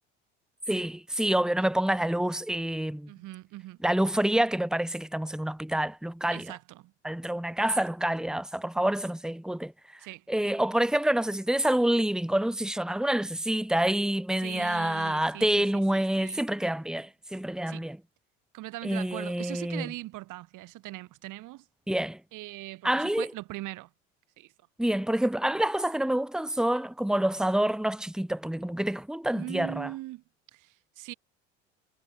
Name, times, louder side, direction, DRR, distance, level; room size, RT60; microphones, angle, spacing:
voice 1, 0.7-3.1 3.8-6.5 7.0-9.7 10.3-18.0 18.8-19.9 21.9-22.2 22.8-23.3 24.8-29.9, right 1 dB, ahead, 2.2 m, -27 dB
voice 2, 3.1-3.8 6.3-6.9 10.0-10.2 14.4-16.4 17.7-17.9 18.5-21.6 22.3-23.9 24.4-24.5 29.3-30.2 30.5-31.1, right 18 dB, 60° right, 7.6 m, -41 dB
hypercardioid pair, 65°, 36 cm